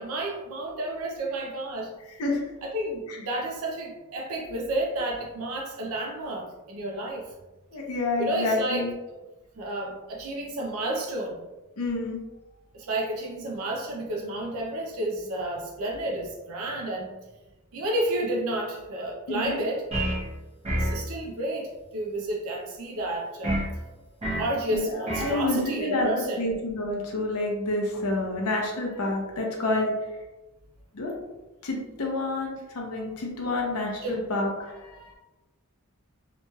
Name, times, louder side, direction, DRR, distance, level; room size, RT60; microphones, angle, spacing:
voice 1, 0.0-1.9 2.6-7.3 8.2-8.9 9.6-11.4 12.7-17.1 17.7-19.9 20.7-23.7 24.3-26.4 34.0-34.2, right 1 dB, 65° right, 0 dB, 0.5 m, -31 dB
voice 2, 7.7-8.9 11.8-12.2 19.3-19.6 24.7-26.1 26.4-29.9 30.9-31.1 31.6-35.1, left 2 dB, 75° left, 0 dB, 0.6 m, -28 dB
sound 1, 19.9-20.3 20.6-21.0 23.4-23.7 24.2-24.5 25.1-25.4, right 1 dB, 25° right, 0.9 m, -28 dB
2.9 x 2.8 x 2.2 m, 1.1 s
head